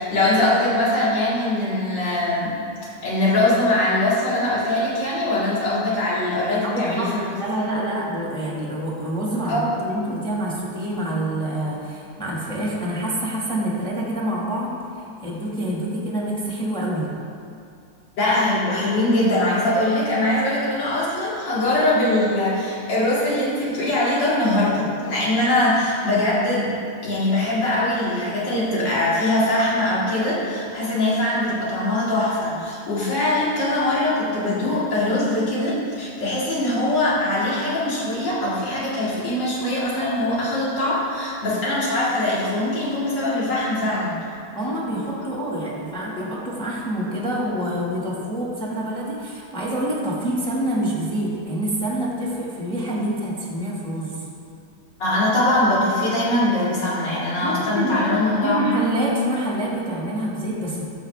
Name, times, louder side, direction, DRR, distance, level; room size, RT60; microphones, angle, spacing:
voice 1, 0.0-2.5 3.0-7.4 9.4-9.7 18.2-26.7 27.0-44.1 55.0-58.6, left 1 dB, 60° left, -7 dB, 2.9 m, -22 dB
voice 2, 6.6-7.1 7.4-14.7 15.2-17.1 44.5-54.1 57.4-60.8, right 1 dB, 5° left, -5 dB, 1.5 m, -26 dB
12.0 x 7.7 x 3.4 m, 2.4 s
omnidirectional pair, 2.2 m